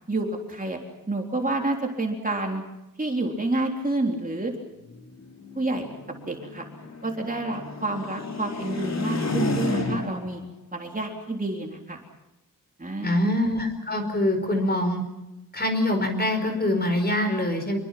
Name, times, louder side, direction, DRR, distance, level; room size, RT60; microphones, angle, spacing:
voice 1, 0.1-0.8 1.1-2.6 3.0-4.5 5.6-5.9 6.3-6.7 7.0-10.4 10.7-12.0 12.8-13.2, right 2 dB, 25° right, 1 dB, 3.6 m, -28 dB
sound 1, 4.9-10.4, left 2 dB, 50° left, 3.6 m, -31 dB
voice 2, 13.0-15.0 15.5-17.8, left 1 dB, 30° left, 6 dB, 5.0 m, -24 dB
27.0 x 23.5 x 5.9 m, 0.93 s
wide cardioid pair, 125°, 34 cm